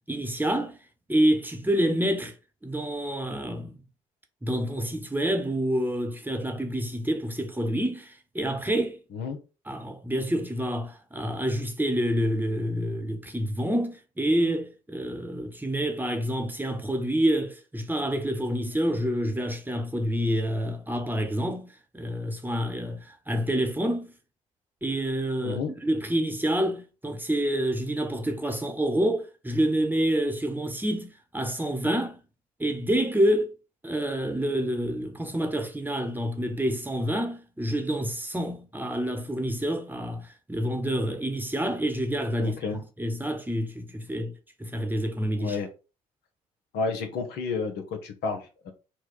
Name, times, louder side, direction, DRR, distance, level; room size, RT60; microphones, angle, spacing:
voice 1, 0.1-0.8 1.1-2.3 2.6-3.8 4.4-9.0 9.7-24.1 24.8-32.2 32.6-33.5 33.8-42.6 43.0-44.3 44.6-45.6, equal, 10° right, 1.0 m, -28 dB
voice 2, 25.4-25.7 42.4-42.8 45.4-45.7 46.7-48.7, left 4 dB, 70° left, 0.9 m, -31 dB
4.4 x 2.3 x 4.5 m
hypercardioid pair, 50°, 18 cm